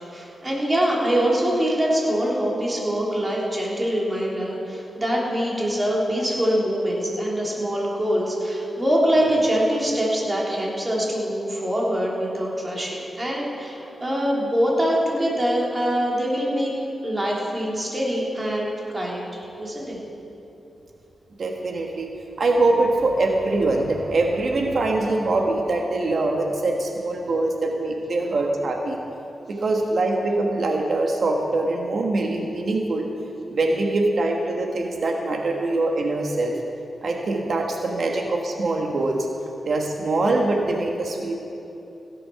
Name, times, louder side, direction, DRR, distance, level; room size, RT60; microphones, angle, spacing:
voice 1, 0.0-16.7 17.0-20.0, equal, 20° right, -4 dB, 3.1 m, -24 dB
voice 2, 21.4-22.1 22.4-29.0 29.5-33.1 33.5-36.5 37.0-39.3 39.6-41.3, right 2 dB, 60° right, 1 dB, 1.3 m, -23 dB
16.5 x 7.8 x 5.8 m, 3.0 s
cardioid pair, 90°, 0 cm